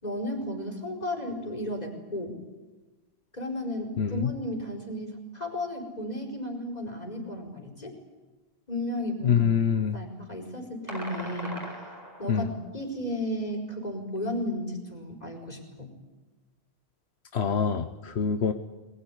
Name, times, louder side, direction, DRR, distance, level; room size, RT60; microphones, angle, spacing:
voice 1, 0.0-2.4 3.3-7.9 8.7-9.6 9.9-11.9 12.2-15.9, left 1 dB, 40° left, 3 dB, 4.9 m, -34 dB
voice 2, 4.0-4.3 9.2-10.0 12.3-12.5 17.3-18.5, left 7 dB, 85° left, 8 dB, 1.3 m, -25 dB
sound 1, 10.9-12.6, equal, 15° right, 4.6 m, -39 dB
23.0 x 20.5 x 9.9 m, 1.2 s
omnidirectional pair, 1.1 m